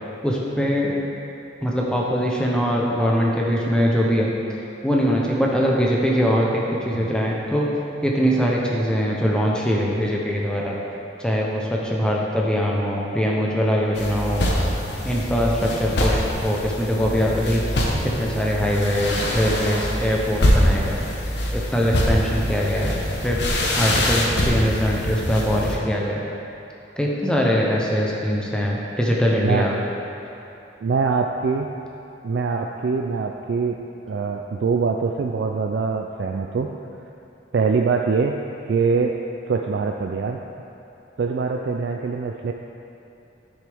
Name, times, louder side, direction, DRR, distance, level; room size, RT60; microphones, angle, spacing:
voice 1, 0.2-0.9 1.6-7.8 8.0-10.8 11.2-14.5 15.0-21.1 21.5-26.2 27.0-29.8, equal, 5° left, -3 dB, 0.7 m, -22 dB
sound 1, 14.0-25.8, left 1 dB, 65° left, 1.0 m, -24 dB
voice 2, 30.8-31.7 32.2-36.7 37.5-38.4 38.7-39.2 39.5-40.4 41.2-42.5, right 5 dB, 65° right, 3 dB, 0.3 m, -23 dB
9.8 x 6.4 x 3.5 m, 2.8 s
head